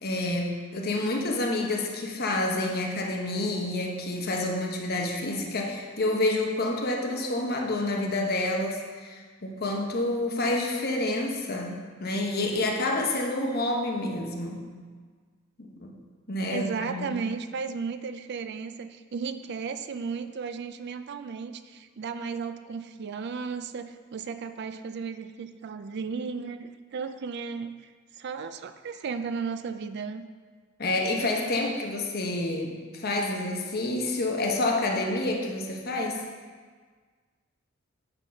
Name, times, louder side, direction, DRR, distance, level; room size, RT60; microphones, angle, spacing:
voice 1, 0.0-14.6 15.6-15.9 16.3-17.2 30.8-36.2, left 2 dB, 50° left, 1 dB, 1.0 m, -28 dB
voice 2, 16.5-27.7 28.2-30.2, right 5 dB, 55° right, 10 dB, 0.4 m, -34 dB
8.9 x 4.0 x 5.7 m, 1.5 s
head